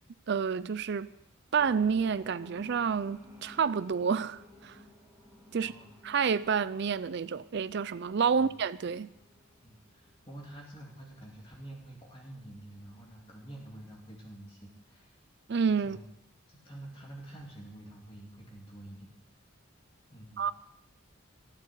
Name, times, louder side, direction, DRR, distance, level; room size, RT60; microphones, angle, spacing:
voice 1, 0.3-1.1 1.5-4.7 5.5-5.7 6.0-9.1 15.5-16.0 20.4-20.5, right 6 dB, 55° right, 0.4 m, -29 dB
sound 1, 1.6-10.4 10.7-10.8, left 2 dB, 10° right, 2.2 m, -55 dB
voice 2, 5.5-5.9 8.3-8.5 9.6-15.2 15.8-16.1 16.5-19.1 20.1-20.5, right 1 dB, 25° left, 2.6 m, -48 dB
13.5 x 7.6 x 10.0 m
head